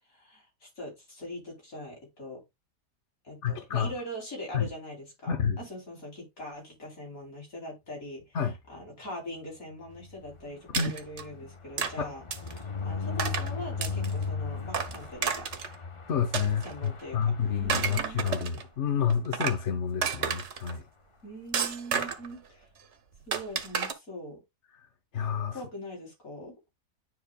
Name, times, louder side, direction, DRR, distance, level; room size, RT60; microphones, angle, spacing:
voice 1, 0.1-2.4 3.2-5.3 5.6-8.4 8.7-12.2 12.5-15.5 16.6-17.2 17.4-18.2 21.2-22.7 23.3-24.4 25.5-26.6, equal, 75° left, 4.0 m, -42 dB
voice 2, 3.4-3.9 4.5-4.7 5.3-5.6 8.3-8.5 10.8-10.9 16.1-20.8 25.1-25.6, left 7 dB, 55° left, 1.2 m, -29 dB
sound 1, 9.9-18.7 19.1-19.3 19.5-19.6 19.9-20.2, left 4 dB, 35° left, 0.5 m, -38 dB
sound 2, 10.7-11.2 11.8-11.9 12.3-12.6 13.2-13.5 13.8-14.2 14.7-15.8 16.3-17.0 17.5-18.6 19.1-19.6 20.0-20.7 21.5-22.3 23.3-23.9, right 6 dB, 55° right, 1.2 m, -31 dB
9.8 x 5.2 x 2.4 m
omnidirectional pair, 1.5 m